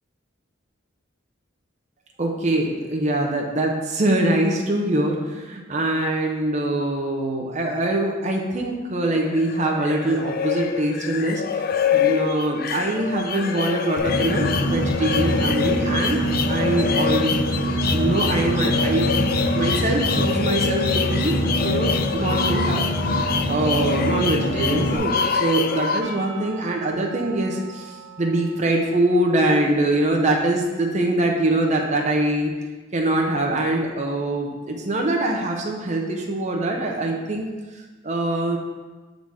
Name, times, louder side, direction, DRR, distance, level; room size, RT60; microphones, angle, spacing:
voice 1, 2.2-11.4 11.9-17.3 17.6-19.2 19.5-22.9 23.5-32.5 32.9-38.6, right 1 dB, 35° right, 0 dB, 0.7 m, -23 dB
sound 1, 9.1-26.0, left 7 dB, 50° left, 0.4 m, -26 dB
Boat Water vehicle, 14.0-25.0, right 1 dB, 65° left, 0.8 m, -24 dB
Percussion, 26.0-30.9, right 5 dB, 80° right, 1.5 m, -44 dB
7.0 x 3.9 x 4.8 m, 1.2 s
head